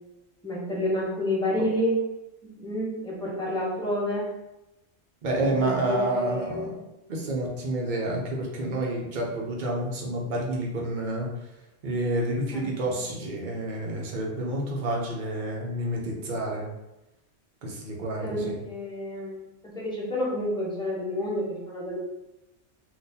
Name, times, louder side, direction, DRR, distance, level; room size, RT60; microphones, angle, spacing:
voice 1, 0.4-2.0 2.4-4.3 5.4-6.8 12.5-13.0 16.1-16.3 18.2-22.0, left 1 dB, 5° left, -5 dB, 0.6 m, -30 dB
voice 2, 5.2-6.8 7.1-11.3 11.8-16.7 17.6-18.5, right 1 dB, 50° right, -2 dB, 0.8 m, -29 dB
3.7 x 2.4 x 2.7 m, 0.97 s
omnidirectional pair, 1.2 m